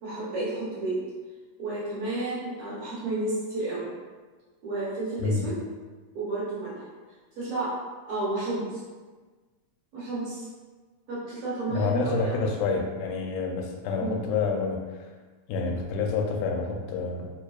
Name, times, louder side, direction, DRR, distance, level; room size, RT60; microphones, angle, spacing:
voice 1, 0.0-1.0 1.6-3.9 4.6-5.6 6.1-6.9 7.4-7.7 8.1-8.8 9.9-10.5 11.1-12.4 14.0-14.1, right 2 dB, 70° right, -8 dB, 1.6 m, -31 dB
voice 2, 5.2-5.5 11.7-15.1 15.5-17.3, left 4 dB, 90° left, 2 dB, 2.0 m, -28 dB
4.5 x 2.7 x 2.3 m, 1.4 s
omnidirectional pair, 3.4 m